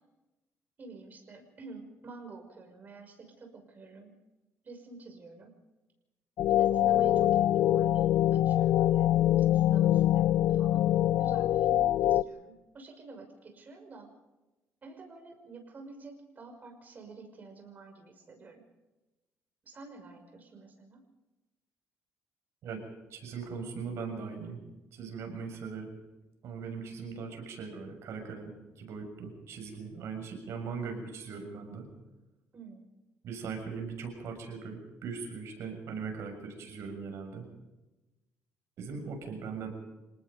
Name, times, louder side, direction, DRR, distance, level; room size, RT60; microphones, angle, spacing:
voice 1, 0.8-4.1 4.6-5.5 6.5-9.1 9.4-10.9 11.2-14.1 14.8-18.6 19.6-21.0 26.7-26.9 32.5-32.8, right 4 dB, 35° right, 4 dB, 5.9 m, -49 dB
sound 1, 6.4-12.2, left 12 dB, 70° left, 0.6 m, -24 dB
voice 2, 23.1-24.6 24.9-25.9 26.4-31.9 33.2-37.5 38.8-39.7, right 5 dB, 65° right, 4 dB, 6.8 m, -40 dB
27.0 x 19.0 x 5.2 m, 1.1 s
cardioid pair, 120°, 5 cm